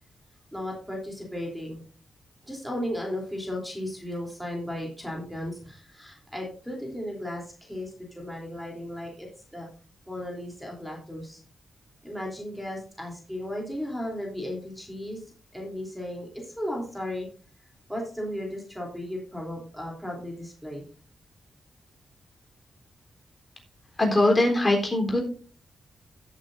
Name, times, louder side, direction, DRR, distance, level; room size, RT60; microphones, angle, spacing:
voice 1, 0.5-1.8 2.4-9.7 10.1-11.4 12.0-17.3 17.9-20.8, left 1 dB, ahead, -1 dB, 3.3 m, -35 dB
voice 2, 24.0-25.2, left 1 dB, 25° left, 1 dB, 3.8 m, -21 dB
16.5 x 8.2 x 2.6 m, 0.39 s
cardioid pair, 95°, 0 cm